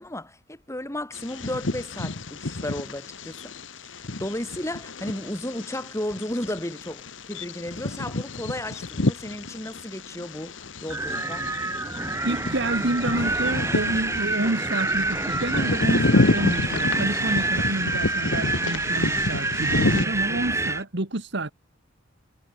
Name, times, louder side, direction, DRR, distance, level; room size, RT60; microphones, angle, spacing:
voice 1, 0.0-3.5 3.8-11.5, left 1 dB, 15° left, 5.2 m, -34 dB
Bird vocalization bird call bird song, 1.1-20.1, left 2 dB, 70° left, 1.3 m, -29 dB
Wind, 10.9-20.8, right 2 dB, 15° right, 1.0 m, -27 dB
voice 2, 12.2-21.5, right 2 dB, 65° right, 2.0 m, -29 dB
head